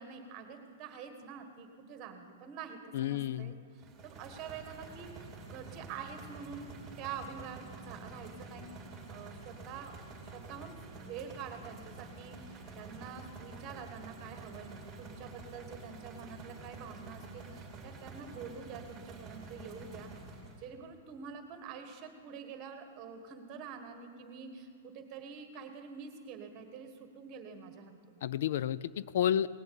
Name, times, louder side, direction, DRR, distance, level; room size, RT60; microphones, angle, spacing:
voice 1, 0.0-8.7 9.1-20.1 20.6-28.2, right 6 dB, 30° right, 6 dB, 1.6 m, -46 dB
voice 2, 2.9-3.5 28.2-29.5, left 10 dB, 60° left, 18 dB, 0.3 m, -31 dB
sound 1, 3.8-20.7, right 3 dB, 10° right, 2.3 m, -49 dB
18.5 x 7.1 x 8.6 m, 2.4 s
hypercardioid pair, 155°, 0 cm